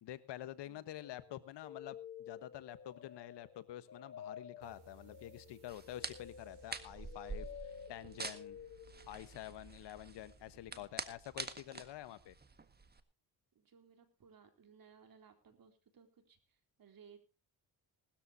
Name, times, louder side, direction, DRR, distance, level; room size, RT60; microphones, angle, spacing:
voice 1, 0.0-8.6 9.1-12.3, left 13 dB, 80° left, 14 dB, 1.3 m, -48 dB
sound 1, 1.0-9.2, left 8 dB, 40° left, 3.8 m, -52 dB
sound 2, 4.6-11.7, right 6 dB, 70° right, 3.5 m, -63 dB
sound 3, 5.7-13.0, right 4 dB, 25° right, 1.6 m, -47 dB
voice 2, 13.5-17.2, right 6 dB, 55° right, 6 dB, 3.9 m, -62 dB
19.5 x 13.5 x 2.8 m, 0.28 s
cardioid pair, 95°, 41 cm